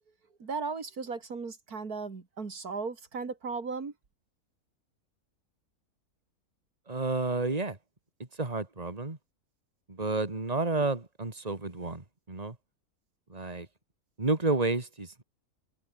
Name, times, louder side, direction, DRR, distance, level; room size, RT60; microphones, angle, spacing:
voice 1, 0.4-3.9, right 4 dB, 80° right, 3.1 m, -36 dB
voice 2, 6.9-7.8 8.4-9.2 9.9-12.5 13.3-13.7 14.2-15.2, right 3 dB, 25° right, 2.9 m, -30 dB
omnidirectional pair, 1.6 m